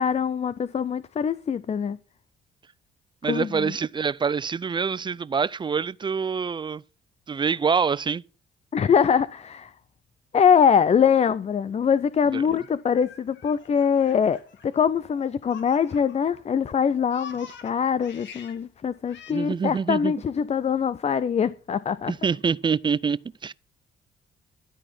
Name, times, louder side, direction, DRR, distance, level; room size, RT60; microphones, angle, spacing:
voice 1, 0.0-2.0 3.3-3.7 8.7-9.7 10.3-22.1, left 7 dB, 35° left, 0.5 m, -23 dB
voice 2, 3.2-6.8 7.3-8.2 12.3-12.4 19.3-20.1 22.1-23.5, right 6 dB, 25° right, 0.4 m, -26 dB
Laughter, 12.3-16.4 16.7-18.6 19.1-19.3, left 6 dB, 65° left, 1.7 m, -46 dB
12.5 x 4.3 x 7.4 m
cardioid pair, 90°, 20 cm